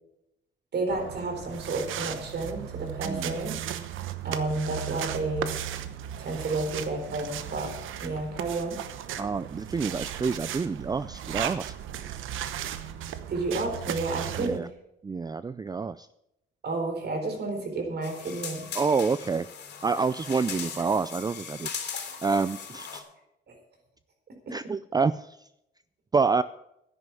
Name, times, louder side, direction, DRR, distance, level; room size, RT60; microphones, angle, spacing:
voice 1, 0.7-3.5 4.2-5.5 6.2-7.7 8.0-8.8 13.3-14.6 16.6-18.7 23.5-23.6 24.5-24.6, right 3 dB, 55° right, 3 dB, 4.3 m, -31 dB
sound 1, 0.9-14.6, right 10 dB, 85° right, 1.0 m, -36 dB
voice 2, 3.0-3.4 9.2-11.7 14.4-14.7 15.0-16.1 18.7-19.5 19.8-23.1 24.5-25.5 26.1-26.4, right 4 dB, 20° right, 14 dB, 0.4 m, -28 dB
sound 2, 18.0-23.0, left 6 dB, 55° left, 3.3 m, -39 dB
10.5 x 9.8 x 7.1 m, 0.81 s
cardioid pair, 90°, 20 cm